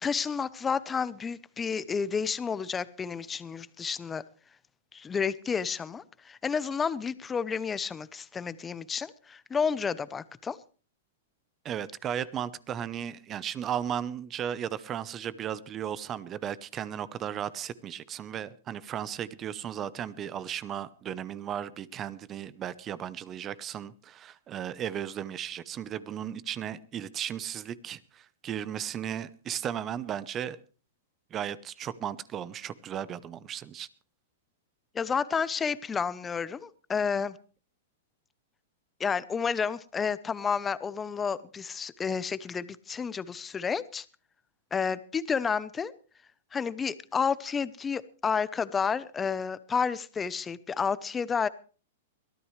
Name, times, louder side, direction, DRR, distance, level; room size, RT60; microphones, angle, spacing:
voice 1, 0.0-4.2 4.9-10.6 34.9-37.4 39.0-44.0 44.7-45.9 46.5-51.5, left 6 dB, 15° left, 0.8 m, -30 dB
voice 2, 11.6-30.6 31.3-33.9, right 9 dB, 25° right, 0.8 m, -35 dB
22.5 x 14.0 x 3.3 m
hypercardioid pair, 130°, 0 cm